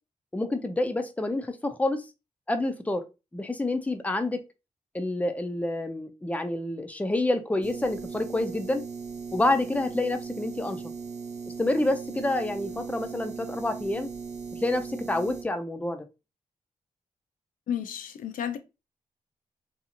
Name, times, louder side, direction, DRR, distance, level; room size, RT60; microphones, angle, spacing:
voice 1, 0.3-2.1 2.5-3.0 3.3-4.4 4.9-8.8 9.3-10.8 11.6-14.1 14.5-16.1, left 2 dB, 10° left, 0.5 m, -28 dB
sound 1, 7.6-15.4, right 5 dB, 60° right, 0.6 m, -38 dB
voice 2, 17.7-18.6, left 9 dB, 80° left, 0.4 m, -32 dB
2.8 x 2.3 x 2.5 m
cardioid pair, 60°, 14 cm